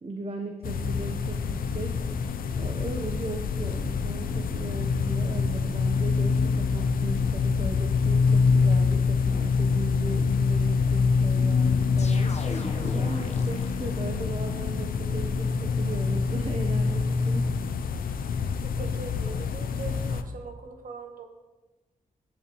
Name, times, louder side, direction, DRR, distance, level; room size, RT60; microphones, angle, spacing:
voice 1, 0.0-17.5, right 3 dB, 45° right, 3 dB, 0.9 m, -37 dB
sound 1, 0.6-20.2, left 5 dB, 85° left, 0.5 m, -25 dB
sound 2, 12.0-14.2, left 2 dB, 50° left, 1.0 m, -38 dB
voice 2, 18.6-21.3, right 5 dB, 75° right, 4 dB, 1.2 m, -41 dB
14.0 x 6.9 x 3.1 m, 1.2 s
cardioid pair, 65°, 14 cm